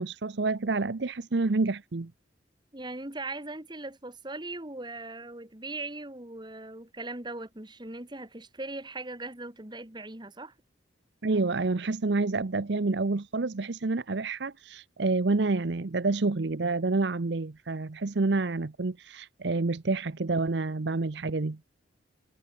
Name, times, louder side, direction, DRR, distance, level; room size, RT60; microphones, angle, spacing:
voice 1, 0.0-2.1 11.2-21.6, right 3 dB, 65° right, 0.7 m, -28 dB
voice 2, 2.7-10.5, right 2 dB, 25° right, 1.9 m, -39 dB
head